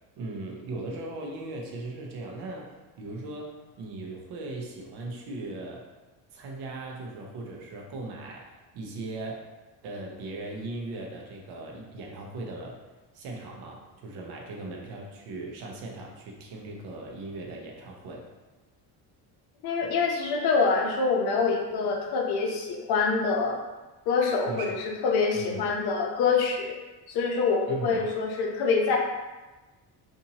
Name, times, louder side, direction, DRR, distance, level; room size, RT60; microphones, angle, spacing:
voice 1, 0.2-5.9 6.3-9.5 9.8-12.8 13.1-18.3 24.4-24.8 25.3-25.7 27.7-28.1, right 2 dB, 70° right, 0 dB, 0.7 m, -38 dB
voice 2, 19.6-23.6 24.1-24.8 25.0-26.7 27.1-29.0, left 4 dB, 65° left, 1 dB, 0.6 m, -25 dB
2.8 x 2.6 x 2.7 m, 1.2 s
cardioid pair, 135°, 41 cm